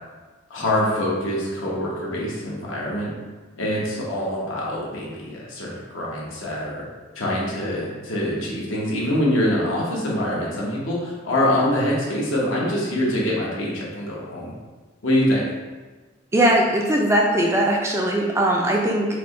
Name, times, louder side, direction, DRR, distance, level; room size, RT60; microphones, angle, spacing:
voice 1, 0.5-3.1 3.6-6.8 7.1-14.5 15.0-15.4, left 1 dB, 80° left, -4 dB, 1.0 m, -24 dB
voice 2, 16.3-19.1, right 1 dB, 15° right, -1 dB, 0.3 m, -20 dB
4.6 x 2.1 x 3.6 m, 1.3 s
head